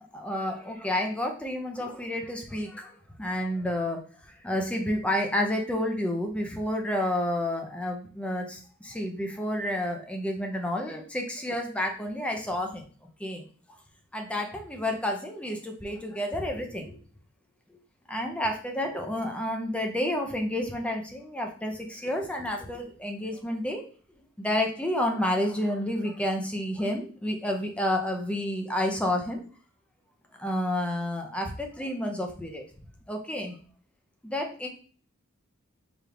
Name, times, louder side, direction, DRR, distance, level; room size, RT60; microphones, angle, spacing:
voice 1, 0.1-12.8 13.2-13.4 14.1-17.0 18.1-23.8 24.4-29.4 30.4-32.6 33.1-33.6 34.2-34.7, left 1 dB, 5° left, 2 dB, 0.6 m, -30 dB
4.5 x 3.5 x 2.4 m, 0.41 s
head